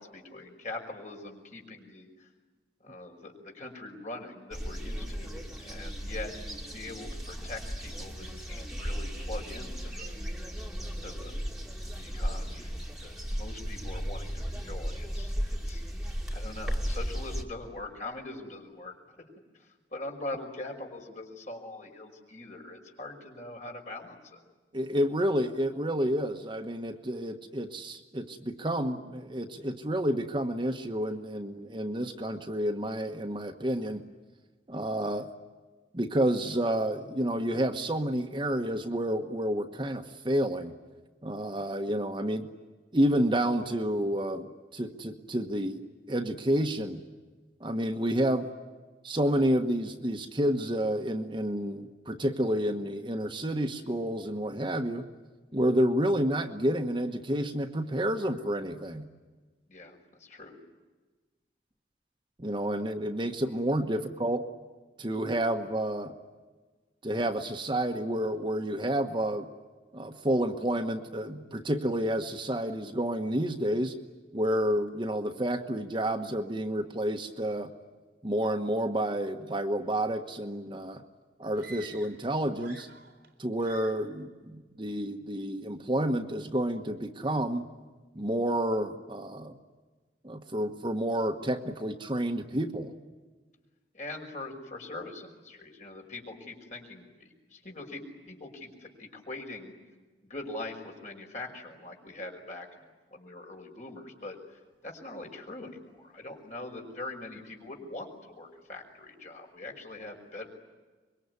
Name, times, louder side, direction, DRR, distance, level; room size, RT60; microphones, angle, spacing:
voice 1, 0.0-2.3 2.8-6.3 6.7-10.2 11.0-11.4 11.9-15.8 16.3-19.2 19.5-24.4 59.7-60.6 93.9-99.7 100.2-102.7 103.1-110.5, left 2 dB, 45° left, 1 dB, 5.6 m, -42 dB
sound 1, 4.5-17.4, equal, 5° right, 2.7 m, -35 dB
voice 2, 24.7-34.0 34.7-35.3 35.9-40.7 41.2-42.5 42.9-44.5 44.7-47.0 47.6-48.5 49.0-55.1 55.5-59.1 62.4-64.4 65.0-66.1 67.0-69.5 69.9-73.9 74.3-77.7 78.2-81.0 81.4-82.9 83.4-87.7 88.1-89.6 90.2-92.9, right 1 dB, 30° right, 5 dB, 1.2 m, -29 dB
sound 2, 81.5-82.3 82.5-83.3 83.6-84.1, right 4 dB, 65° right, 3.8 m, -49 dB
25.5 x 23.0 x 9.7 m, 1.3 s
head